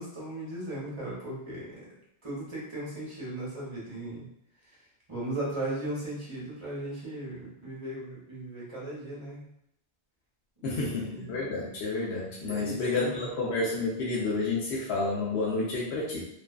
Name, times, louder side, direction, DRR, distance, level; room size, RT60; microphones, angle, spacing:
voice 1, 0.0-1.8 2.2-4.2 5.1-9.5 10.6-11.2 12.4-13.3, right 1 dB, 30° right, -7 dB, 0.9 m, -37 dB
voice 2, 10.6-16.2, left 3 dB, 75° left, -5 dB, 0.8 m, -30 dB
2.5 x 2.3 x 2.2 m, 0.79 s
omnidirectional pair, 1.1 m